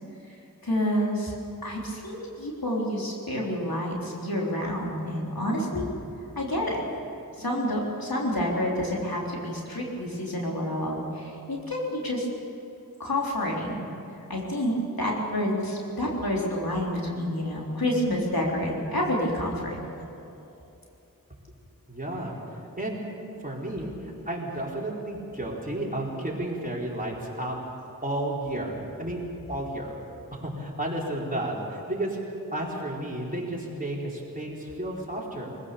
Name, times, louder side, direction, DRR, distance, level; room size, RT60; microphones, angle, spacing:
voice 1, 0.6-1.3 1.6-5.9 6.4-6.8 7.4-12.3 13.0-13.8 14.3-19.8, left 1 dB, 75° left, -3 dB, 3.9 m, -28 dB
voice 2, 21.9-23.0 23.4-27.6 28.0-29.2 29.5-30.0 30.3-32.2 32.5-35.6, right 1 dB, 25° right, -4 dB, 4.3 m, -32 dB
24.0 x 16.0 x 6.9 m, 2.8 s
wide cardioid pair, 45°, 36 cm